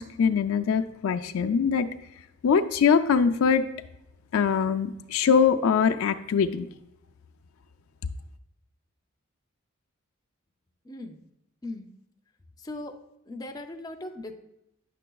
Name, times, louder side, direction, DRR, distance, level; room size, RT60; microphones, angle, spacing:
voice 1, 0.0-1.9 2.4-3.6 4.3-6.7, left 6 dB, 75° left, 7 dB, 0.4 m, -23 dB
voice 2, 10.9-11.2 11.6-11.9 12.6-12.9 13.3-14.3, left 2 dB, 20° left, 4 dB, 0.5 m, -38 dB
9.0 x 6.7 x 2.3 m, 0.86 s
head